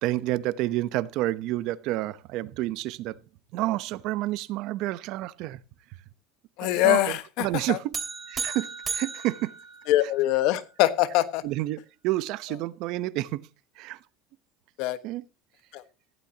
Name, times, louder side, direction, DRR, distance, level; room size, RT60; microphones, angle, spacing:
voice 1, 0.0-3.2 3.5-5.6 6.8-7.9 8.3-8.7 8.9-9.5 11.4-11.8 12.0-13.4 13.8-14.0 15.0-15.2, right 16 dB, 60° right, 0.8 m, -29 dB
voice 2, 6.6-7.8 9.9-11.4 14.8-15.0 15.7-15.8, left 15 dB, 65° left, 1.3 m, -23 dB
sound 1, 7.9-10.4, right 5 dB, 25° right, 2.6 m, -35 dB
15.5 x 11.5 x 2.9 m
supercardioid pair, 125°, 0 cm